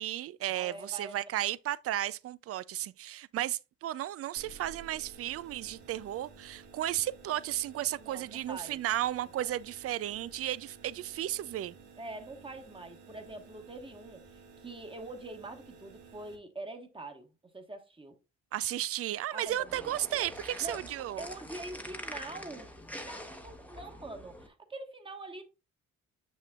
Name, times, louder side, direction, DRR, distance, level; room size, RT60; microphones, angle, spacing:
voice 1, 0.0-11.7 18.5-21.2, right 13 dB, 50° right, 0.4 m, -34 dB
voice 2, 0.5-1.2 8.0-8.8 9.4-9.5 12.0-18.1 19.3-20.0 20.6-20.9 21.2-25.5, right 2 dB, 15° right, 1.4 m, -44 dB
sound 1, 4.4-16.4, right 4 dB, 85° right, 1.8 m, -54 dB
sound 2, 19.5-24.5, equal, 5° left, 1.0 m, -45 dB
6.7 x 6.3 x 2.4 m
cardioid pair, 90°, 30 cm